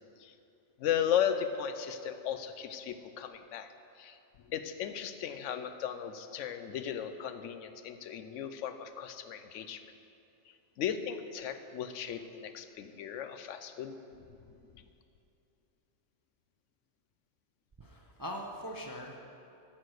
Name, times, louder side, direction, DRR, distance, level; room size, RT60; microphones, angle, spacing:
voice 1, 0.8-3.7 4.0-4.2 4.5-9.8 10.8-13.9 14.3-14.8, left 9 dB, 80° left, 9 dB, 0.9 m, -36 dB
voice 2, 17.8-19.2, equal, 25° right, 0 dB, 0.4 m, -41 dB
13.0 x 4.4 x 6.3 m, 2.7 s
omnidirectional pair, 1.3 m